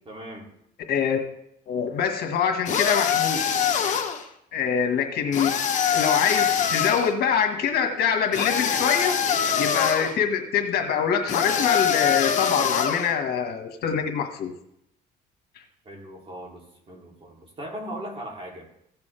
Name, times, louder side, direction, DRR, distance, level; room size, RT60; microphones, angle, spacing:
voice 1, 0.0-0.5 15.8-18.7, right 1 dB, 35° right, -1 dB, 3.2 m, -38 dB
voice 2, 0.9-1.2 1.7-3.5 4.5-5.6 5.9-9.2 9.6-14.5, left 7 dB, 70° left, 4 dB, 1.7 m, -24 dB
sound 1, 2.7-4.2 5.3-7.1 8.3-10.1 11.3-13.1, left 8 dB, 45° left, 1.3 m, -24 dB
16.0 x 6.9 x 3.4 m, 0.75 s
cardioid pair, 110°, 17 cm